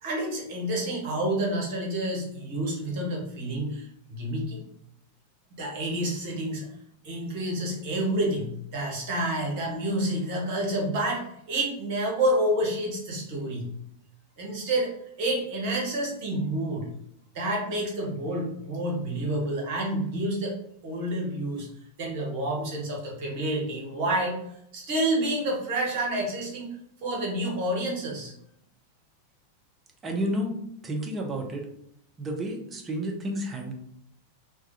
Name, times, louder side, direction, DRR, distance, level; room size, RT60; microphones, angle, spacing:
voice 1, 0.0-4.6 5.5-6.7 7.0-13.7 14.4-16.9 17.3-20.6 20.8-21.7 22.0-24.4 24.7-26.8 27.0-28.3, right 1 dB, 45° right, -1 dB, 0.9 m, -29 dB
voice 2, 30.0-30.5 30.8-31.7 32.2-33.7, equal, 20° right, 1 dB, 0.5 m, -30 dB
2.3 x 2.1 x 2.7 m, 0.74 s
figure-of-eight pair, 90°, 0 cm